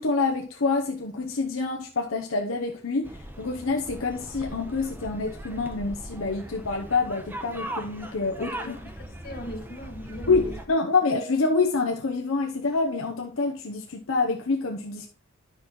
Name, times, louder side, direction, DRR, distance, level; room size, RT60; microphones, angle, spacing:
voice 1, 0.0-8.8 10.3-15.1, left 3 dB, 80° left, 0.9 m, -27 dB
sound 1, 3.0-10.7, right 1 dB, 10° right, 1.0 m, -39 dB
voice 2, 8.4-10.6, equal, 50° left, 1.7 m, -39 dB
10.0 x 6.1 x 3.1 m
head